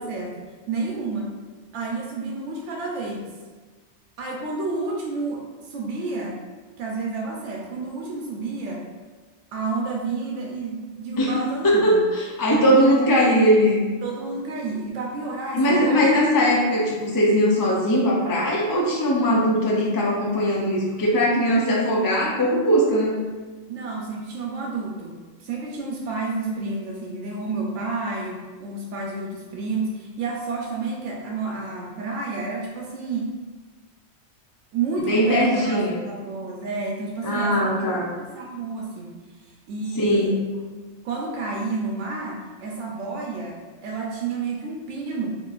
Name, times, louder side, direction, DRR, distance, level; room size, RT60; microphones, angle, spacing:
voice 1, 0.0-1.3 1.7-3.3 4.2-6.4 6.8-8.9 9.5-12.0 12.7-13.1 14.0-16.1 23.7-33.2 34.7-37.8 38.3-39.1 39.4-40.4 41.0-45.3, right 3 dB, 90° right, -1 dB, 0.9 m, -30 dB
voice 2, 11.2-13.8 15.5-23.2 35.1-36.0 37.2-38.1 40.0-40.3, equal, 35° left, -3 dB, 0.3 m, -20 dB
3.7 x 3.7 x 2.4 m, 1.4 s
omnidirectional pair, 1.2 m